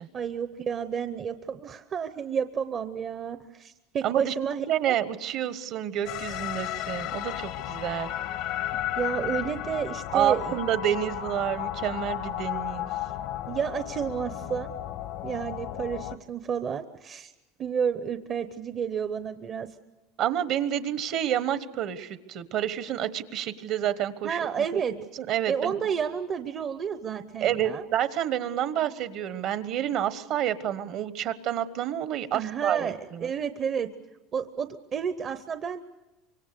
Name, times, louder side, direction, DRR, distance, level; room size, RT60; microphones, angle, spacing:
voice 1, 0.1-5.0 9.0-10.6 13.5-14.7 15.2-17.3 17.6-19.7 24.2-25.0 25.5-27.8 32.3-33.9 34.3-35.8, right 7 dB, 35° right, 10 dB, 0.8 m, -31 dB
voice 2, 4.0-4.3 4.7-8.1 10.1-12.9 20.2-24.4 24.7-24.8 25.2-25.8 27.4-33.3, right 10 dB, 55° right, 13 dB, 1.2 m, -29 dB
sound 1, 6.0-16.2, left 12 dB, 70° left, 1.0 m, -34 dB
25.5 x 23.5 x 6.8 m, 1.0 s
supercardioid pair, 125°, 0 cm